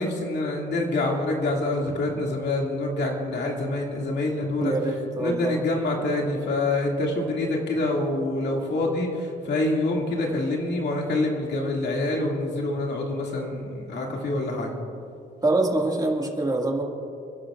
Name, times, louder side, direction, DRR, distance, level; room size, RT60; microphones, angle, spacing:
voice 1, 0.0-4.7 5.2-14.7, left 2 dB, 60° left, -1 dB, 2.5 m, -26 dB
voice 2, 4.6-5.6 15.4-16.8, right 2 dB, 20° right, 0 dB, 2.1 m, -25 dB
28.5 x 11.5 x 2.5 m, 2.5 s
cardioid pair, 90°, 20 cm